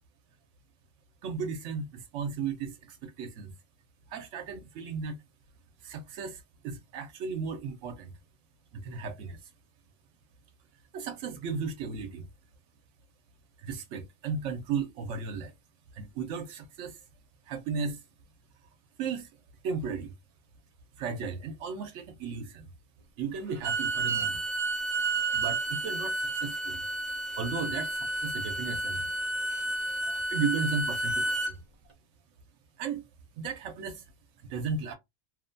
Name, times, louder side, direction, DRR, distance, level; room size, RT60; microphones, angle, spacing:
voice 1, 1.2-3.5 4.1-5.2 5.8-8.1 8.7-9.4 10.9-12.2 13.6-15.5 15.9-17.0 17.5-18.0 19.0-19.3 19.6-20.1 21.0-22.7 23.2-24.4 25.3-26.8 27.4-29.1 30.0-31.6 32.8-33.0 33.4-34.0 34.5-35.0, right 5 dB, 90° right, 1.0 m, -35 dB
Bowed string instrument, 23.5-31.5, right 2 dB, 40° right, 0.5 m, -31 dB
2.9 x 2.1 x 2.5 m
omnidirectional pair, 1.2 m